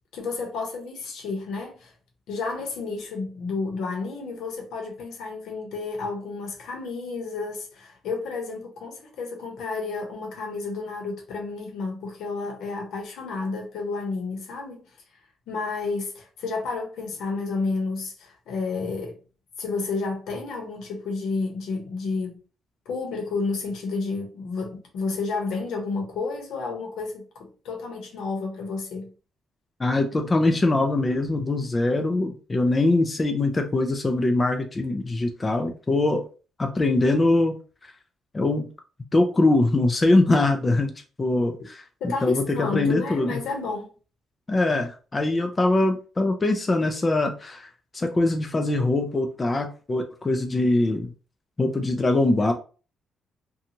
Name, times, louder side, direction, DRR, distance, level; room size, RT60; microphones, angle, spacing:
voice 1, 0.1-1.9 2.3-14.9 15.5-19.2 19.6-22.4 22.9-29.1 31.9-32.0 42.0-43.9, left 4 dB, 80° left, 0.9 m, -31 dB
voice 2, 29.8-36.2 36.6-37.6 38.3-38.7 39.1-40.9 41.2-41.8 42.2-42.4 42.7-43.4 44.5-51.1 51.6-52.5, left 2 dB, 25° left, 0.4 m, -22 dB
2.6 x 2.3 x 2.9 m
cardioid pair, 90°, 0 cm